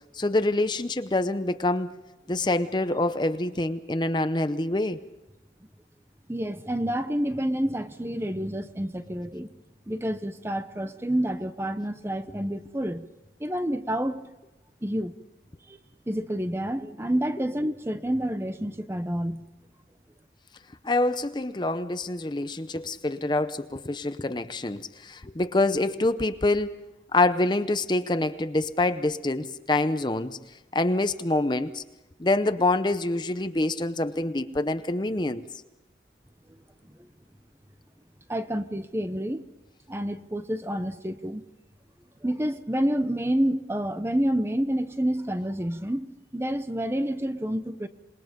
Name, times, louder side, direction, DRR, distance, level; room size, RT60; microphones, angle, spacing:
voice 1, 0.2-1.9 2.3-5.0 20.8-26.7 27.1-30.4 30.7-31.8 32.2-35.4, left 2 dB, 25° left, 0.7 m, -26 dB
voice 2, 6.3-9.5 9.9-13.1 13.4-14.3 14.8-15.1 15.7-15.8 16.1-19.5 38.3-39.4 39.9-41.4 42.2-47.9, equal, 15° right, 0.8 m, -28 dB
27.5 x 21.0 x 5.3 m
head